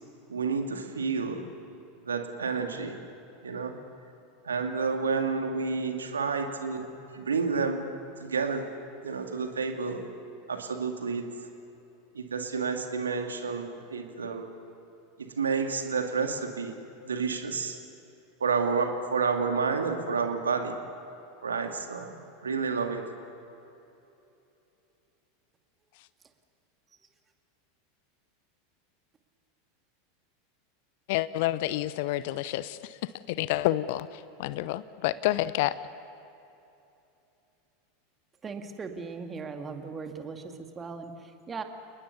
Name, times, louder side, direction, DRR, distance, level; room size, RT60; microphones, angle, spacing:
voice 1, 0.3-1.5 2.0-3.0 3.4-3.8 4.4-7.9 8.2-8.7 9.0-10.0 10.5-11.3 12.1-14.5 15.2-16.8 17.0-17.8 18.4-20.8 21.4-23.0, right 5 dB, 75° right, 5 dB, 2.4 m, -30 dB
voice 2, 31.1-35.8, left 15 dB, 55° left, 17 dB, 0.6 m, -29 dB
voice 3, 38.4-41.6, right 4 dB, 20° right, 5 dB, 2.3 m, -39 dB
29.5 x 20.0 x 7.1 m, 2.9 s
figure-of-eight pair, 85°, 0 cm